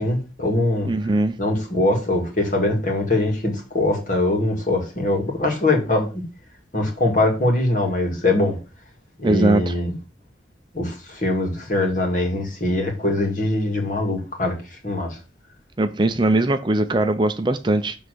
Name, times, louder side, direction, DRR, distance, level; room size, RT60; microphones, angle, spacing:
voice 1, 0.0-0.9 1.4-6.2 6.7-8.6 9.2-9.9 10.7-15.2, left 2 dB, 45° left, 2.1 m, -22 dB
voice 2, 0.9-1.4 9.2-9.7 15.8-18.0, right 2 dB, 25° right, 0.5 m, -20 dB
7.1 x 3.5 x 6.3 m
head